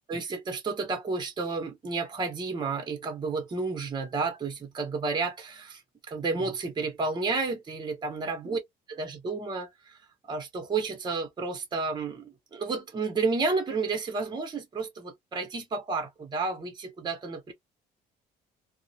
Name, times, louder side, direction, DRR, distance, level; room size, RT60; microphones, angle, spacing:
voice 1, 0.1-5.8 6.1-8.6 8.9-10.0 10.3-17.5, right 4 dB, 25° right, 0.8 m, -31 dB
2.2 x 2.0 x 2.7 m
cardioid pair, 110°, 17 cm